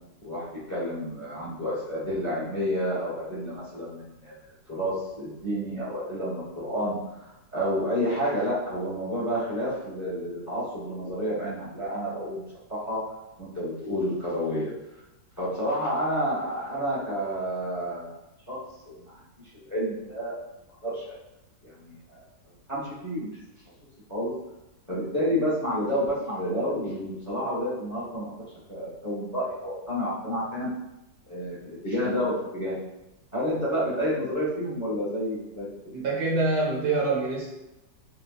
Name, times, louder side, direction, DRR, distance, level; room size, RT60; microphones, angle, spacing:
voice 1, 0.2-4.3 4.7-12.4 12.7-13.0 13.4-14.7 15.4-18.1 18.5-18.6 18.8-19.2 19.5-20.4 20.8-21.2 21.6-22.2 22.7-23.3 24.1-24.3 24.9-28.4 28.7-30.7 31.3-32.8 33.3-35.7, equal, 15° left, -8 dB, 0.8 m, -30 dB
voice 2, 35.9-37.5, right 3 dB, 70° right, -2 dB, 1.2 m, -25 dB
3.2 x 2.2 x 3.9 m, 0.91 s
omnidirectional pair, 2.0 m